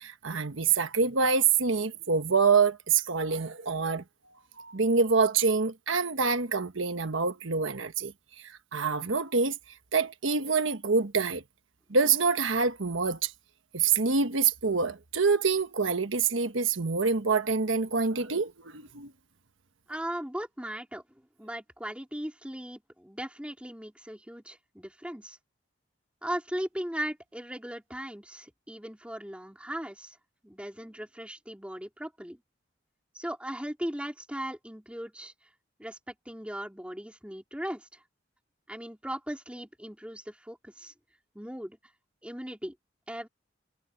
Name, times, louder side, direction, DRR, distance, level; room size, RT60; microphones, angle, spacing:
voice 1, 0.0-4.0 4.6-8.1 8.4-9.6 9.9-11.4 11.9-13.3 13.7-19.1, right 5 dB, 80° right, 1.3 m, -26 dB
voice 2, 19.9-21.0 21.4-25.4 26.2-30.2 30.4-32.4 33.1-35.3 35.8-38.0 38.7-40.9 41.3-41.8 42.2-42.7 43.1-43.3, equal, 5° right, 3.9 m, -38 dB
head